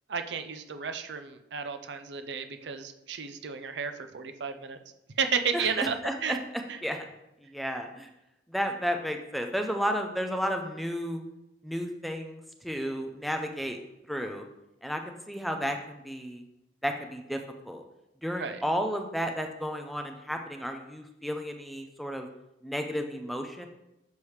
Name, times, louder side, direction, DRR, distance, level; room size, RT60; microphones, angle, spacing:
voice 1, 0.1-4.8 5.2-6.0 6.2-6.4 6.7-6.8 18.4-18.6, right 6 dB, 75° right, 9 dB, 0.5 m, -32 dB
voice 2, 5.5-6.4 6.8-7.0 7.4-8.1 8.5-11.2 11.6-13.8 14.1-14.4 14.8-16.4 16.8-17.4 17.6-17.8 18.2-22.3 22.6-23.7, equal, ahead, 4 dB, 0.4 m, -32 dB
7.0 x 4.7 x 3.2 m, 0.91 s
head